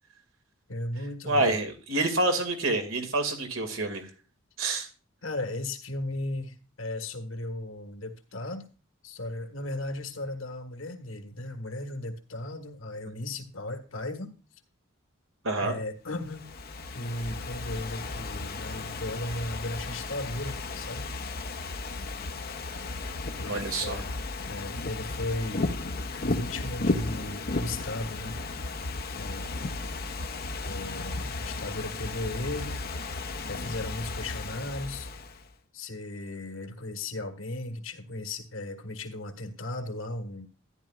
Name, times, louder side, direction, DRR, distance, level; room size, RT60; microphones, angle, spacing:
voice 1, 0.7-1.6 5.2-8.7 9.0-14.3 15.6-16.5 16.9-21.1 23.3-24.1 24.4-25.6 26.2-28.4 29.2-29.5 30.7-32.9 33.4-35.1 35.7-40.5, left 2 dB, 70° left, 1.6 m, -36 dB
voice 2, 1.2-4.1 4.6-4.9 15.4-15.7 23.4-24.0, right 2 dB, 75° right, 2.4 m, -27 dB
Ocean / Fireworks, 16.2-35.5, left 3 dB, 45° left, 0.8 m, -34 dB
13.5 x 10.5 x 2.4 m
head